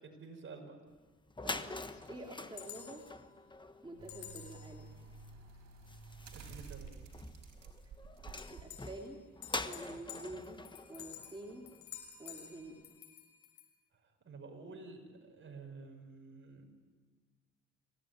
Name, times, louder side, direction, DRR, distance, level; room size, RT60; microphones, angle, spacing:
voice 1, 0.0-0.8 6.3-6.9 14.2-16.7, right 4 dB, 40° right, 3 dB, 5.8 m, -50 dB
sound 1, 1.0-1.1 1.3-12.1, left 2 dB, 15° left, 1.3 m, -46 dB
sound 2, 1.9-3.3 4.1-4.9 5.5-5.6 6.3-6.4 6.9-7.0 8.4-9.2 9.4-13.6, left 10 dB, 90° left, 6.7 m, -52 dB
voice 2, 2.1-3.0 3.8-4.9 8.5-9.2 9.6-10.6 10.9-11.7 12.2-12.7, right 1 dB, 15° right, -1 dB, 3.3 m, -48 dB
sound 3, 4.0-8.6 9.1-9.2, right 4 dB, 60° right, 4.9 m, -51 dB
26.0 x 18.0 x 9.7 m, 1.4 s
cardioid pair, 90°, 30 cm